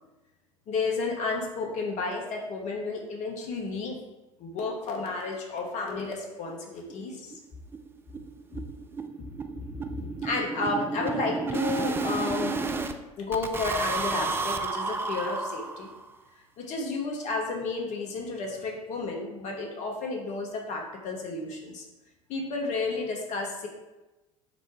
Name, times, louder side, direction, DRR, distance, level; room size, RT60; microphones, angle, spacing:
voice 1, 0.7-4.0 4.4-7.4 10.0-12.6 13.2-15.9 16.6-21.8 22.3-23.7, left 3 dB, 45° left, 1 dB, 1.0 m, -32 dB
sound 1, 6.1-6.2 6.5-6.6 6.9-7.0 7.3-7.5 7.7-12.9 13.3-16.1, right 4 dB, 15° right, 0.3 m, -32 dB
5.1 x 2.2 x 4.7 m, 1.1 s
figure-of-eight pair, 70°, 17 cm